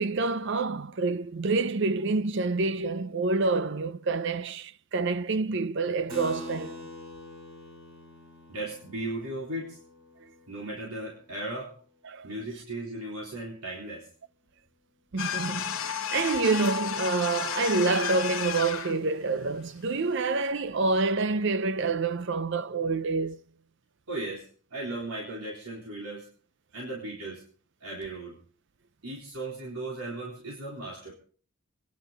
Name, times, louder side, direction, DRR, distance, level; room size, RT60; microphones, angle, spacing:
voice 1, 0.0-6.8 12.1-12.3 15.1-23.4, right 3 dB, 55° right, 0.6 m, -27 dB
Keyboard (musical), 6.1-12.1, left 1 dB, 25° right, 4.8 m, -45 dB
voice 2, 8.5-9.8 10.5-11.7 12.2-14.1 24.1-26.3 26.7-27.4 27.8-28.4 29.0-31.1, right 2 dB, 85° right, 3.9 m, -36 dB
sound 1, 15.2-19.0, left 8 dB, 70° left, 1.1 m, -32 dB
25.5 x 10.5 x 3.9 m
head